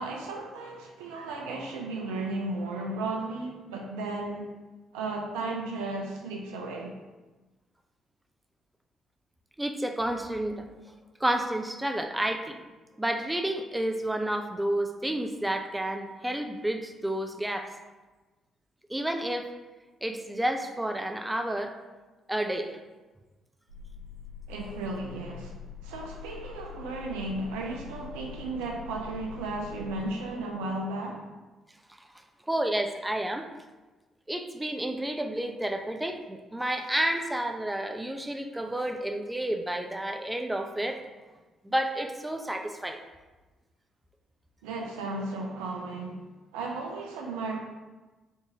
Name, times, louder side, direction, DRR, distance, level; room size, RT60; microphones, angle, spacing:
voice 1, 0.0-4.5 4.9-6.9 24.5-25.5 25.8-31.2 44.6-46.2 46.5-47.6, right 2 dB, 70° right, 0 dB, 0.5 m, -34 dB
voice 2, 9.6-10.7 11.2-12.6 13.0-17.7 18.9-19.5 20.0-21.7 22.3-22.8 32.0-32.1 32.5-33.5 34.3-41.0 41.6-43.0, right 1 dB, 10° right, 5 dB, 0.4 m, -30 dB
sound 1, 23.7-30.0, left 8 dB, 85° left, 0.7 m, -44 dB
3.5 x 2.6 x 2.7 m, 1.2 s
figure-of-eight pair, 40°, 0 cm